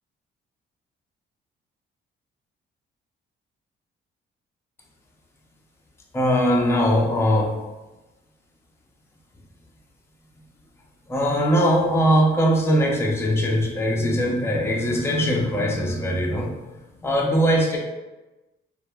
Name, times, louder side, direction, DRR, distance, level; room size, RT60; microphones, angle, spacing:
voice 1, 6.1-7.6 11.1-16.6 17.0-17.8, equal, 10° left, -1 dB, 0.4 m, -21 dB
2.1 x 2.1 x 3.3 m, 1.1 s
cardioid pair, 90°, 20 cm